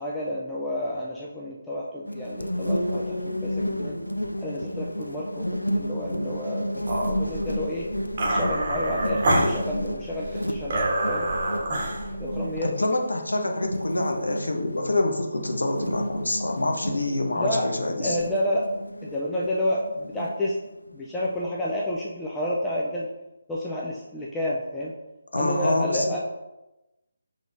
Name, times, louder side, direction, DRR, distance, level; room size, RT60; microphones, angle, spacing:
voice 1, 0.0-4.0 4.4-7.9 8.2-11.3 12.2-12.7 17.4-17.7 18.0-18.7 19.0-20.6 20.9-23.1 23.5-24.9 25.3-26.2, left 1 dB, 5° left, -5 dB, 0.4 m, -30 dB
sound 1, 2.1-21.4, equal, 85° left, 0.4 m, -32 dB
sound 2, 6.8-12.6, right 1 dB, 35° right, 1.0 m, -27 dB
voice 2, 12.6-18.2 25.3-26.1, left 2 dB, 70° left, 3 dB, 0.9 m, -26 dB
6.1 x 3.3 x 2.6 m, 0.98 s
figure-of-eight pair, 150°, 0 cm